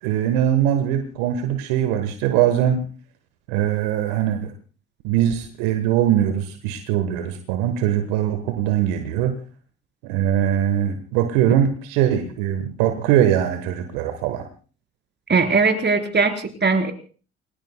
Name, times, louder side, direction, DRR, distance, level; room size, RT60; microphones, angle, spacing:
voice 1, 0.0-2.8 3.5-4.5 5.0-9.4 10.0-14.5, right 10 dB, 70° right, 8 dB, 1.3 m, -21 dB
voice 2, 15.3-16.9, right 4 dB, 30° right, 5 dB, 3.8 m, -19 dB
28.5 x 20.5 x 2.2 m, 0.38 s
hypercardioid pair, 50°, 33 cm